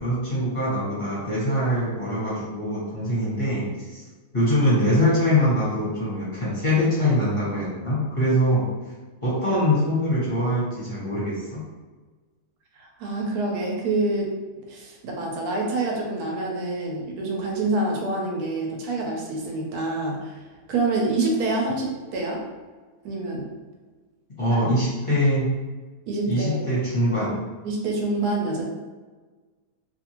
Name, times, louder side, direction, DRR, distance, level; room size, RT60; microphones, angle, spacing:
voice 1, 0.0-4.0 4.3-8.6 9.2-11.6 24.4-25.5 26.2-27.4, left 1 dB, 25° left, -10 dB, 0.9 m, -23 dB
voice 2, 12.8-14.3 14.7-22.4 23.0-23.5 26.1-26.6 27.6-28.7, right 2 dB, 70° right, -1 dB, 1.1 m, -27 dB
2.7 x 2.5 x 2.9 m, 1.3 s
omnidirectional pair, 1.8 m